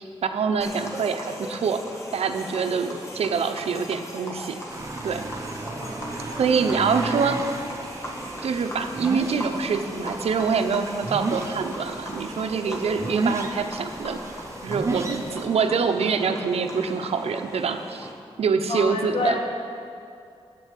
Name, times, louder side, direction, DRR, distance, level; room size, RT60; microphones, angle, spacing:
voice 1, 0.0-1.8 2.1-4.6 5.0-5.3 6.4-7.4 8.4-14.2 14.6-18.1 18.4-19.4, right 5 dB, 85° right, 7 dB, 0.8 m, -25 dB
sound 1, 0.6-18.1, equal, 30° left, 1.6 m, -38 dB
sound 2, 4.7-15.5, right 3 dB, 30° right, 0.9 m, -33 dB
voice 2, 5.8-6.4 6.7-7.4 18.7-19.4, left 2 dB, 65° left, 0 dB, 1.8 m, -30 dB
8.5 x 8.0 x 8.3 m, 2.4 s
wide cardioid pair, 110°, 10 cm